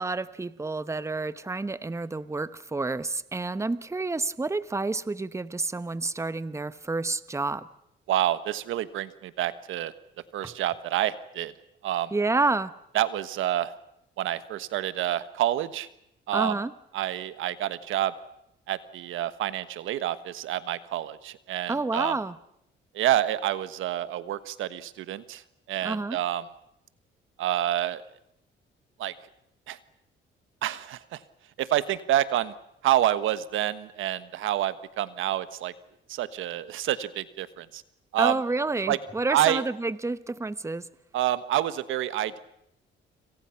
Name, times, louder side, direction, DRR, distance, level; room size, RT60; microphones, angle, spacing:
voice 1, 0.0-7.7 10.4-10.5 12.1-12.7 16.3-16.7 21.7-22.3 25.8-26.2 38.2-40.9, right 3 dB, 15° right, 14 dB, 1.0 m, -29 dB
voice 2, 8.1-9.9 10.3-11.5 11.8-12.1 12.9-13.7 14.2-15.9 16.3-16.5 16.9-18.1 18.7-22.1 22.9-25.4 25.7-26.4 27.4-28.0 29.0-29.1 29.7-29.8 30.6-31.2 31.6-32.5 32.8-35.7 36.1-37.8 38.1-38.4 38.9-39.0 39.3-39.6 41.1-42.4, right 12 dB, 85° right, 14 dB, 1.3 m, -28 dB
29.5 x 26.5 x 5.9 m, 0.76 s
cardioid pair, 90°, 20 cm